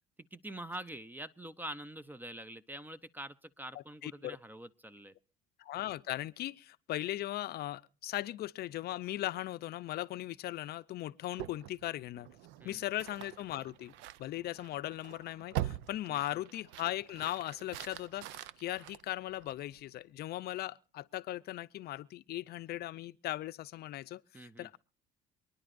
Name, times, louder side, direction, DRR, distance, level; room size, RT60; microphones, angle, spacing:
voice 1, 0.3-5.1 12.6-12.8 16.1-16.2 24.3-24.7, right 1 dB, 10° right, 0.6 m, -45 dB
voice 2, 3.7-4.4 5.6-12.3 12.6-13.9 14.2-24.8, left 14 dB, 55° left, 0.5 m, -38 dB
sound 1, 11.4-19.8, right 13 dB, 75° right, 0.5 m, -44 dB
27.5 x 10.0 x 2.5 m
supercardioid pair, 85°, 19 cm